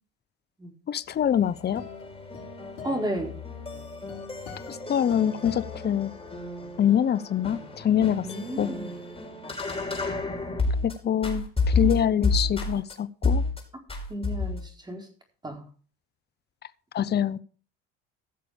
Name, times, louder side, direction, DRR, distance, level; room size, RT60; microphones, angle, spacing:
voice 1, 0.9-1.8 4.7-6.1 6.8-8.2 8.6-8.7 10.8-11.5 11.7-13.4 16.9-17.4, left 9 dB, 35° left, 0.8 m, -24 dB
sound 1, 1.1-6.6, left 7 dB, 70° left, 4.8 m, -45 dB
sound 2, 1.2-10.9 11.2-12.9 13.2-13.6 13.9-14.7, left 3 dB, 20° left, 5.5 m, -31 dB
voice 2, 2.8-3.4 8.2-8.9 14.1-15.1 15.4-15.6, equal, 15° right, 4.3 m, -32 dB
15.5 x 6.8 x 5.1 m
supercardioid pair, 75°, 30 cm